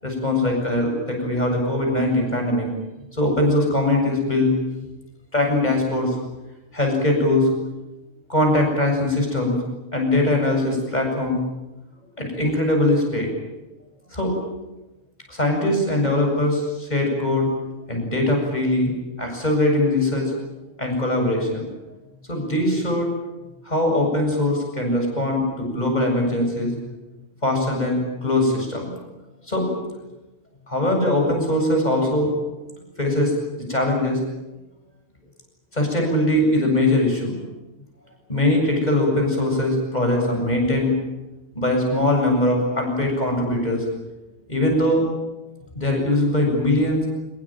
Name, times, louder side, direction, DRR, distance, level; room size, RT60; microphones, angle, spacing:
voice 1, 0.0-2.7 3.1-4.5 5.3-6.2 6.7-7.5 8.3-9.6 9.9-11.4 12.2-13.3 14.1-14.3 15.3-17.5 17.9-20.3 20.8-21.6 22.3-23.1 23.6-26.8 27.4-28.9 29.5-29.7 30.7-32.3 33.0-33.3 33.7-34.2 35.7-37.4 38.3-40.9 41.5-43.8 44.5-45.0 45.7-47.1, left 1 dB, 35° left, 2 dB, 8.2 m, -21 dB
25.0 x 22.0 x 9.2 m, 1.0 s
omnidirectional pair, 1.3 m